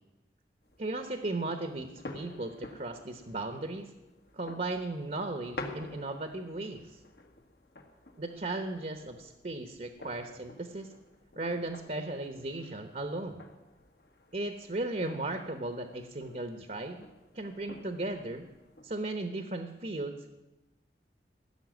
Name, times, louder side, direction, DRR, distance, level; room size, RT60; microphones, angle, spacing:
sound 1, 0.6-19.0, left 2 dB, 65° left, 1.6 m, -50 dB
voice 1, 0.8-3.9 4.3-7.0 8.2-10.9 11.4-13.4 14.3-17.1 17.3-18.5 18.8-20.3, right 2 dB, 45° right, 6 dB, 1.0 m, -36 dB
16.5 x 6.8 x 9.4 m, 1.0 s
head